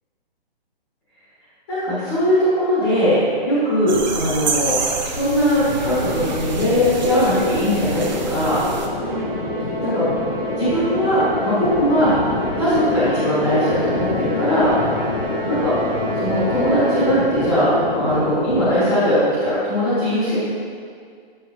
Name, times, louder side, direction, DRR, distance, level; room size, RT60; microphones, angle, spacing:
voice 1, 1.7-3.2 3.4-4.8 5.1-8.6 9.8-10.1 10.6-12.1 12.6-14.7 15.5-15.8 16.2-20.4, equal, 15° left, -12 dB, 1.3 m, -19 dB
sound 1, 3.9-8.9, right 4 dB, 50° right, 0.7 m, -28 dB
sound 2, 5.6-18.7, left 2 dB, 45° left, 0.7 m, -27 dB
Musical instrument, 9.0-17.5, equal, 70° right, 1.2 m, -30 dB
7.4 x 6.6 x 3.0 m, 2.1 s
hypercardioid pair, 180°, 30 cm